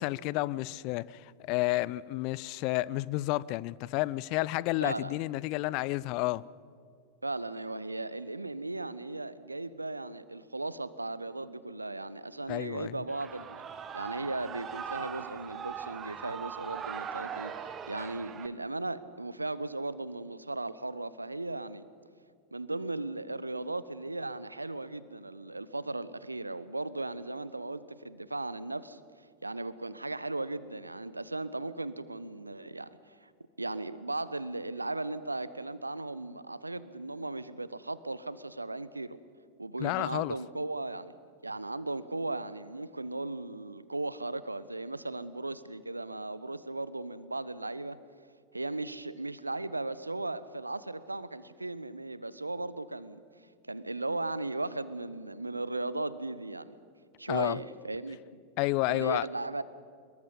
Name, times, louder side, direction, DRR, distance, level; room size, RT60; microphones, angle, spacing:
voice 1, 0.0-6.4 12.5-13.0 39.8-40.4 57.3-57.6 58.6-59.3, left 19 dB, 45° left, 0.5 m, -31 dB
voice 2, 4.8-5.2 7.2-13.6 13.9-17.5 17.9-21.9 22.5-29.0 29.4-33.3 33.6-39.2 39.6-41.1 41.4-48.0 48.5-53.2 53.6-56.8 57.2-58.2 58.9-59.6, right 2 dB, 85° right, 0.8 m, -37 dB
Shout / Cheering, 13.1-18.5, right 8 dB, 25° right, 1.3 m, -40 dB
24.5 x 22.0 x 5.7 m
figure-of-eight pair, 90°, 0 cm